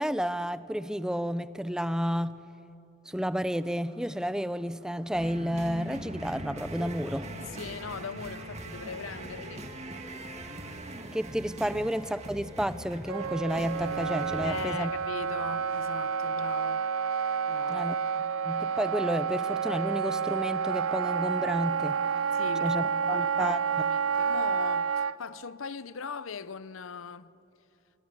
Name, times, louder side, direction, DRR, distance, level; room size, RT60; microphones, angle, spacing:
voice 1, 0.0-2.4 3.1-7.3 11.1-14.9 17.7-18.0 18.5-22.0 22.6-23.6, equal, 5° right, 0.6 m, -31 dB
sound 1, 3.3-16.3, right 1 dB, 65° right, 7.4 m, -62 dB
sound 2, 5.1-14.7, right 1 dB, 35° right, 2.2 m, -41 dB
voice 2, 7.4-9.7 11.7-11.8 14.4-16.9 17.5-17.9 22.3-22.8 23.1-27.3, left 5 dB, 75° left, 0.7 m, -40 dB
Wind instrument woodwind instrument, 13.1-25.1, right 6 dB, 85° right, 0.5 m, -29 dB
28.0 x 23.5 x 8.4 m
head